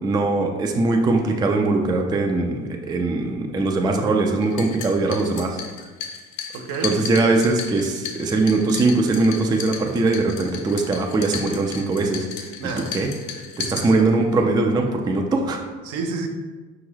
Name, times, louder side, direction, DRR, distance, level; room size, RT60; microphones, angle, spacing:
voice 1, 0.0-5.6 6.8-12.5 12.9-13.1 13.6-15.6, right 3 dB, 10° right, 3 dB, 0.4 m, -21 dB
sound 1, 4.4-14.4, left 7 dB, 70° left, 0.6 m, -35 dB
voice 2, 6.5-7.0 12.6-12.9 13.6-14.1 15.8-16.3, right 4 dB, 60° right, 4 dB, 0.6 m, -30 dB
5.1 x 2.4 x 3.1 m, 1.3 s
hypercardioid pair, 55°, 38 cm